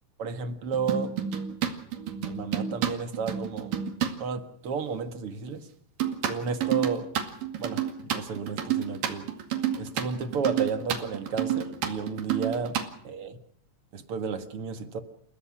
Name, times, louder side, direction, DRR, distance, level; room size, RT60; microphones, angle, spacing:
voice 1, 0.2-1.1 2.2-3.7 4.2-5.7 6.3-7.1 7.6-9.3 9.8-12.8 13.0-13.4 13.9-15.0, right 5 dB, 50° right, 9 dB, 2.2 m, -32 dB
sound 1, 0.7-4.1 6.0-12.9, right 9 dB, 75° right, 3.8 m, -29 dB
29.5 x 16.0 x 6.2 m, 0.68 s
omnidirectional pair, 3.9 m